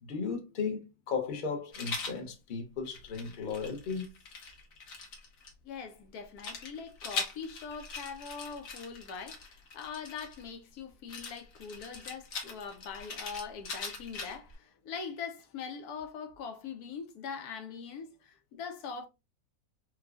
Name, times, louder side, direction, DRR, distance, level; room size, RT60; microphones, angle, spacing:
voice 1, 0.0-4.1, left 5 dB, 45° left, 0.7 m, -35 dB
Rattle, 1.7-2.2 2.8-5.5 6.4-10.5 11.1-14.5, left 4 dB, 70° left, 1.4 m, -41 dB
voice 2, 5.6-19.1, left 6 dB, 90° left, 1.2 m, -42 dB
4.5 x 2.3 x 2.4 m
omnidirectional pair, 1.6 m